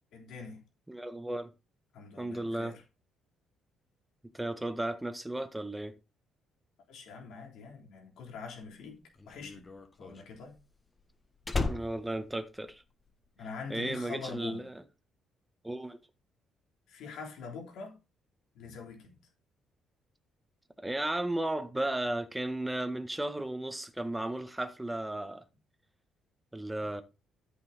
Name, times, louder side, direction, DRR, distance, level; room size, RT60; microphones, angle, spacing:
voice 1, 0.1-0.6 1.9-2.8 6.9-9.7 10.0-10.6 13.4-14.6 16.9-18.0 18.5-19.2, left 5 dB, 75° left, 3.6 m, -44 dB
voice 2, 0.9-1.5 2.2-2.7 4.3-5.9 11.7-12.8 13.7-14.7 15.6-16.0 20.8-25.4 26.5-27.0, right 1 dB, 10° right, 1.6 m, -34 dB
Slam, 8.6-13.3 13.5-14.0, left 3 dB, 20° left, 1.3 m, -37 dB
13.0 x 5.8 x 4.2 m
cardioid pair, 105°, 0 cm